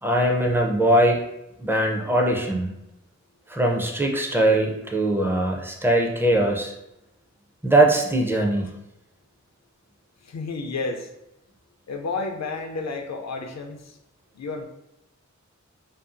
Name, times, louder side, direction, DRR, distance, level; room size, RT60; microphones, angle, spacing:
voice 1, 0.0-1.2 1.6-2.7 3.5-6.7 7.6-8.7, right 1 dB, 10° right, 1 dB, 0.4 m, -21 dB
voice 2, 10.2-11.1 11.9-14.0 14.3-14.7, left 3 dB, 65° left, 4 dB, 0.4 m, -31 dB
2.6 x 2.3 x 2.5 m, 0.87 s
wide cardioid pair, 50°, 30 cm